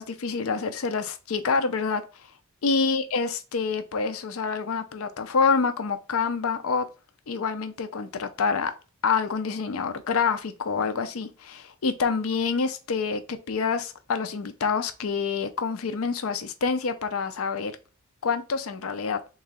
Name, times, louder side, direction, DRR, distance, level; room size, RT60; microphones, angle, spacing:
voice 1, 0.0-2.0 2.6-6.9 7.3-8.7 9.0-17.7 18.2-19.2, left 5 dB, 85° left, 0.5 m, -27 dB
3.7 x 3.0 x 3.6 m
head